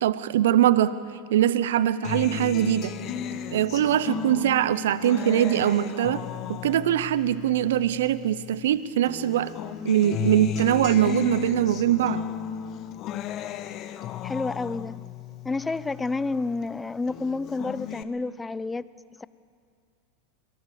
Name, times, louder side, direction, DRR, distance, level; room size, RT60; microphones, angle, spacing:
voice 1, 0.0-1.0 1.3-2.9 3.5-6.2 6.5-9.5 9.8-12.2, right 11 dB, 75° right, 16 dB, 0.8 m, -22 dB
Acoustic guitar, 2.0-8.7 9.1-16.7 17.1-18.0, left 9 dB, 45° left, 1.2 m, -35 dB
voice 2, 14.2-15.0 15.4-18.9 19.2-19.3, left 3 dB, 15° left, 17 dB, 0.6 m, -29 dB
23.0 x 19.0 x 7.0 m, 2.2 s
hypercardioid pair, 95°, 0 cm